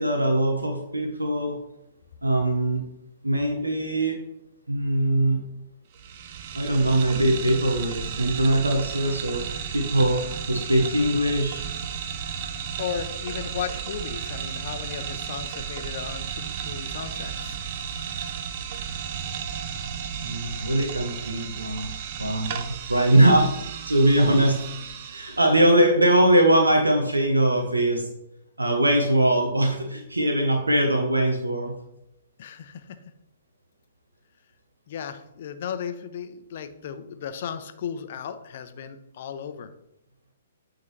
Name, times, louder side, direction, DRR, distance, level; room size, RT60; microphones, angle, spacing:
voice 1, 0.0-1.6 2.2-2.8 3.2-4.1 4.7-5.4 6.5-10.2 10.5-11.6 20.2-21.9 22.2-23.5 23.9-24.6 25.0-28.0 28.6-31.7, right 1 dB, 90° right, 2 dB, 0.9 m, -21 dB
sound 1, 5.9-25.6, right 7 dB, 45° right, 0.6 m, -34 dB
voice 2, 12.8-17.6 32.4-33.0 34.9-39.7, left 8 dB, 50° left, 10 dB, 0.6 m, -35 dB
8.7 x 3.8 x 3.2 m, 0.84 s
figure-of-eight pair, 120°, 0 cm